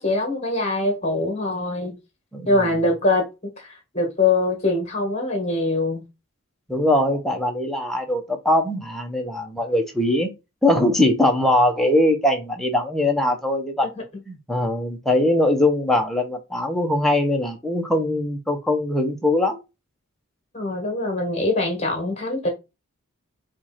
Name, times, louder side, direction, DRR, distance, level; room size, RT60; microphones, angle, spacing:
voice 1, 0.0-2.0 2.5-3.3 3.6-6.1 20.5-22.5, left 2 dB, 30° left, 1.6 m, -23 dB
voice 2, 2.3-2.7 6.7-10.3 10.6-13.9 14.3-19.6, left 1 dB, ahead, 0.8 m, -21 dB
4.6 x 2.4 x 4.2 m
head